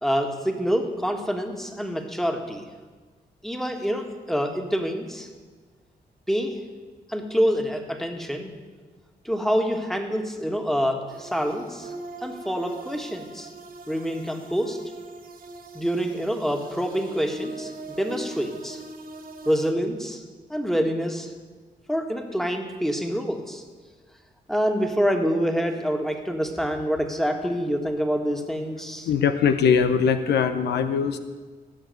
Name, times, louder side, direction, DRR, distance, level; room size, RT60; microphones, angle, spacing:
voice 1, 0.0-2.7 3.4-5.3 6.3-6.6 7.1-8.5 9.2-11.9 12.2-13.5 13.9-14.8 15.7-18.8 19.5-20.2 20.5-21.3 21.9-23.6 24.5-29.1, equal, ahead, 4 dB, 1.8 m, -26 dB
sound 1, 11.1-19.7, right 2 dB, 60° right, 1.3 m, -40 dB
voice 2, 29.1-31.2, left 6 dB, 90° left, 9 dB, 0.8 m, -21 dB
17.0 x 6.3 x 8.0 m, 1.4 s
cardioid pair, 65°, 17 cm